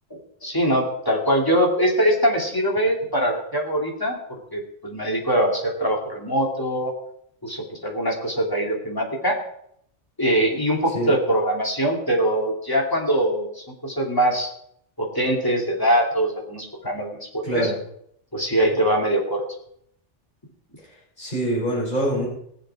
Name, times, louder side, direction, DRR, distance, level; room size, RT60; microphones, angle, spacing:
voice 1, 0.1-6.9 7.4-9.4 10.2-14.5 15.0-17.7 18.3-19.4, right 1 dB, 15° left, 0 dB, 2.6 m, -23 dB
voice 2, 17.4-17.7 20.9-22.3, right 1 dB, 40° left, -5 dB, 5.9 m, -25 dB
20.0 x 7.4 x 4.7 m, 0.70 s
omnidirectional pair, 1.2 m